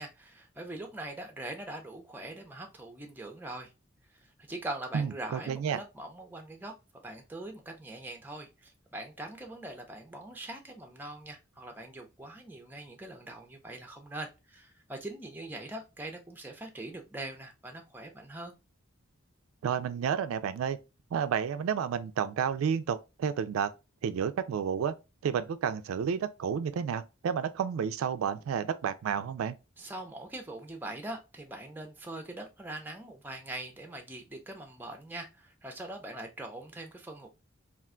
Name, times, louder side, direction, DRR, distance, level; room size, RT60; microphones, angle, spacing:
voice 1, 0.0-3.7 4.1-6.7 7.0-18.5 29.8-37.3, right 1 dB, 10° right, 0.5 m, -42 dB
voice 2, 4.9-5.8 19.6-20.8 21.1-23.7 24.0-24.9 25.2-29.6, right 7 dB, 85° right, 0.3 m, -31 dB
2.4 x 2.2 x 3.6 m
head